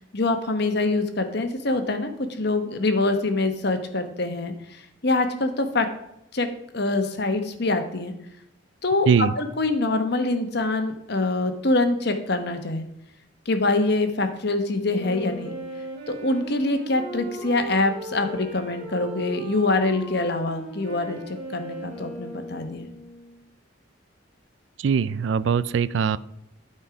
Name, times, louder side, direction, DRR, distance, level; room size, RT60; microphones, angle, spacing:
voice 1, 0.0-4.5 5.0-5.9 6.3-6.5 6.7-8.1 8.8-12.8 13.5-15.5 16.1-22.9, left 2 dB, 55° left, 7 dB, 1.1 m, -24 dB
Wind instrument woodwind instrument, 14.8-23.4, right 2 dB, 30° right, 3.1 m, -37 dB
voice 2, 24.8-26.2, right 6 dB, 65° right, 17 dB, 0.4 m, -21 dB
12.5 x 4.5 x 4.8 m, 0.79 s
head